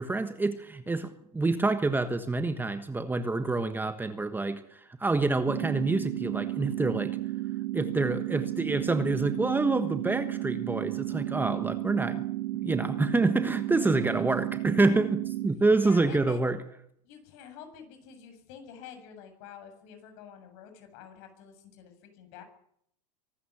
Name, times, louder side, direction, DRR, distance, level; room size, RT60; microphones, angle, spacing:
voice 1, 0.0-7.2 7.7-12.2 12.6-16.6, right 3 dB, 10° right, 9 dB, 1.3 m, -27 dB
sound 1, 5.5-15.5, right 16 dB, 80° right, 2.3 m, -33 dB
voice 2, 13.8-14.3 15.8-16.5 17.0-22.4, left 8 dB, 55° left, 7 dB, 7.4 m, -48 dB
24.0 x 12.5 x 9.8 m, 0.70 s
supercardioid pair, 125°, 21 cm